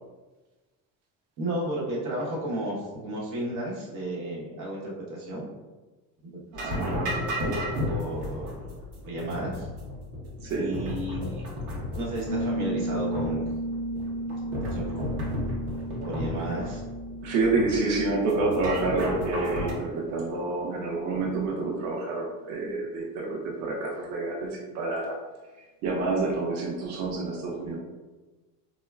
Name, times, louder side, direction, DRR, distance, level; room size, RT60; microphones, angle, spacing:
voice 1, 1.4-5.5 6.6-7.2 7.9-8.7 9.0-9.7 10.5-11.4 11.9-13.4 14.2-14.3 14.6-15.0 16.1-16.8, right 1 dB, 90° right, -4 dB, 1.1 m, -33 dB
voice 2, 6.5-7.1 10.4-10.7 17.2-25.2 25.8-27.8, right 3 dB, 45° right, -1 dB, 0.5 m, -28 dB
sound 1, 6.5-19.7, left 1 dB, 65° right, 0.8 m, -34 dB
Piano, 12.3-20.8, right 1 dB, 30° left, 0.4 m, -35 dB
3.7 x 2.1 x 2.3 m, 1.2 s
cardioid pair, 175°, 38 cm